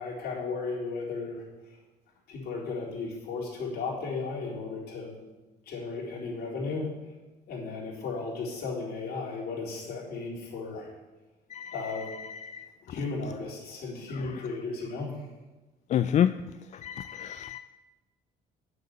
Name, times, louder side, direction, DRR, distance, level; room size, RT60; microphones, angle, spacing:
voice 1, 0.0-1.4 2.3-5.2 5.7-6.9 7.5-10.9 11.7-12.1 12.8-15.2, left 4 dB, 70° left, -4 dB, 3.9 m, -35 dB
voice 2, 12.2-12.7 14.1-14.2 15.9-16.3 16.8-17.6, left 10 dB, 45° left, 12 dB, 0.4 m, -28 dB
8.8 x 6.7 x 8.4 m, 1.1 s
cardioid pair, 110°, 17 cm